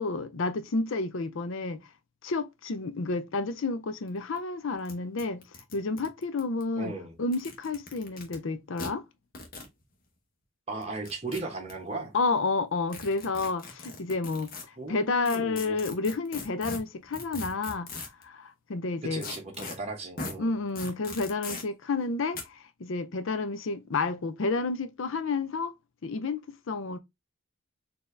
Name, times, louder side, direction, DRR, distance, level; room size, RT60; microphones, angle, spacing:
voice 1, 0.0-1.8 2.2-5.4 5.7-9.0 12.1-14.5 14.9-19.2 20.4-25.7 26.0-27.0, left 3 dB, 70° left, 0.5 m, -30 dB
sound 1, 4.1-4.2 4.4-4.5 4.8-4.9 5.2-6.6 7.2-8.4 8.8-8.9 9.3-9.7 10.8-11.7 12.9-14.6 15.2-18.2 19.2-19.7 20.2-20.3 20.7-21.6 22.3-22.4, left 3 dB, 45° left, 1.0 m, -39 dB
voice 2, 6.8-7.1 10.7-12.1 14.8-15.8 19.1-20.5, right 3 dB, 30° right, 1.2 m, -36 dB
4.3 x 2.8 x 3.2 m
head